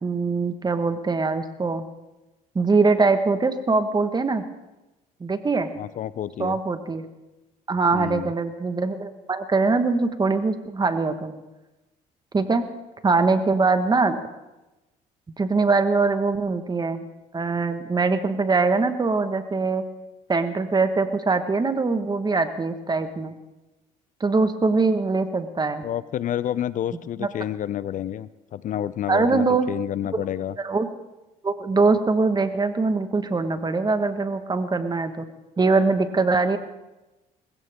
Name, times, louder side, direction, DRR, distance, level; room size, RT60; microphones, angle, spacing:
voice 1, 0.0-1.8 2.5-4.4 5.2-5.7 6.4-7.1 7.7-11.3 12.3-12.6 13.0-14.2 15.4-17.0 17.3-19.8 20.3-23.3 24.2-25.8 27.2-27.3 29.1-29.7 30.1-30.2 30.6-30.9 31.4-35.2 35.6-36.6, right 3 dB, 25° right, 9 dB, 1.5 m, -22 dB
voice 2, 5.8-6.6 7.9-8.3 25.8-30.5, left 11 dB, 55° left, 17 dB, 0.5 m, -29 dB
20.0 x 16.0 x 3.7 m, 1.0 s
supercardioid pair, 80°, 16 cm